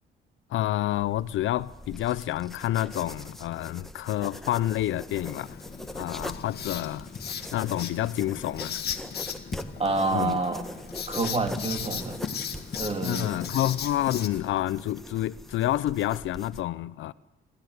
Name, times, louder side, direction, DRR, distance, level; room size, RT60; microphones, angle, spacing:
voice 1, 0.5-5.6 5.9-7.1 7.5-8.8 10.1-10.4 13.0-17.1, left 13 dB, 75° left, 0.6 m, -28 dB
sound 1, 0.9-16.6, equal, ahead, 1.4 m, -43 dB
Writing, 5.1-14.3, left 7 dB, 55° left, 2.0 m, -37 dB
voice 2, 9.8-10.6 11.1-12.2 12.8-13.4, right 3 dB, 30° right, 3.2 m, -28 dB
28.0 x 13.0 x 8.1 m
cardioid pair, 90°, 20 cm